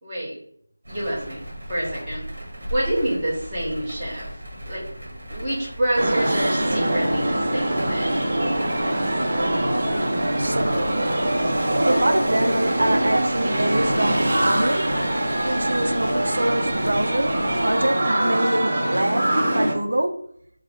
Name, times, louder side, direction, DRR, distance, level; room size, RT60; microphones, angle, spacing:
voice 1, 0.0-0.4 0.9-2.2 2.7-4.3 4.7-4.8 5.3-8.2, right 1 dB, 10° right, -10 dB, 0.9 m, -27 dB
sound 1, 0.8-17.9, right 1 dB, 55° right, 1.4 m, -37 dB
sound 2, 6.0-19.7, right 1 dB, 35° right, 0.6 m, -23 dB
voice 2, 10.4-10.7 11.8-14.9 15.4-17.3 17.6-20.1, right 1 dB, 75° right, 6 dB, 0.4 m, -25 dB
3.6 x 2.0 x 3.3 m, 0.66 s
figure-of-eight pair, 175°, 0 cm